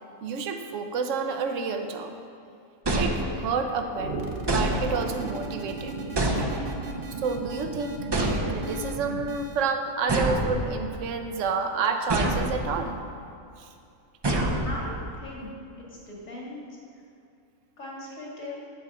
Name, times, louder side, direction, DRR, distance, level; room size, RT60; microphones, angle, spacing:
voice 1, 0.2-2.1 3.0-4.1 4.5-6.2 7.2-8.1 8.5-13.0 13.6-13.7, right 5 dB, 65° right, 6 dB, 1.1 m, -29 dB
sound 1, 2.8-3.7 4.5-5.3 6.2-7.0 8.1-8.9 10.1-11.1 12.1-12.9 14.2-15.2, right 1 dB, 30° right, 0.5 m, -27 dB
sound 2, 3.9-9.7, right 2 dB, 50° right, 0.9 m, -36 dB
voice 2, 14.6-15.5 15.8-16.6 17.8-18.6, left 1 dB, 70° left, -5 dB, 2.7 m, -39 dB
9.3 x 5.0 x 7.3 m, 2.5 s
omnidirectional pair, 1.4 m